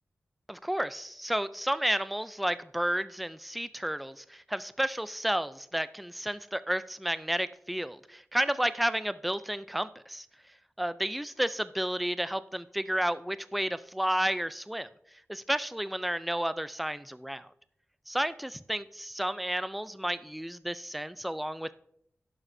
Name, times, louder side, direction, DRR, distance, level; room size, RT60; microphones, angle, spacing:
voice 1, 0.5-10.3 10.8-14.9 15.3-17.5 18.1-21.8, right 1 dB, ahead, 14 dB, 0.3 m, -31 dB
12.0 x 11.0 x 2.6 m, 0.69 s
wide cardioid pair, 130°, 5 cm